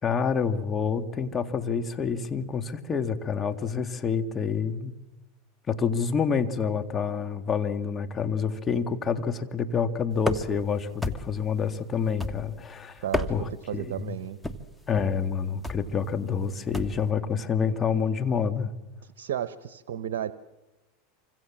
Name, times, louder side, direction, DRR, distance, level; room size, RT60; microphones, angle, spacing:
voice 1, 0.0-4.9 5.7-13.0 13.3-14.1 14.9-18.7, left 6 dB, 25° left, 8 dB, 2.3 m, -28 dB
sound 1, 10.2-10.7 11.0-11.5 12.2-12.7 13.0-13.6 14.4-14.8 15.6-15.9 16.7-17.1, left 2 dB, 5° left, 1.8 m, -31 dB
voice 2, 13.0-13.3 13.7-14.4 19.2-20.3, right 10 dB, 70° right, 14 dB, 1.1 m, -32 dB
27.5 x 25.5 x 7.5 m, 1.0 s
hypercardioid pair, 105°, 0 cm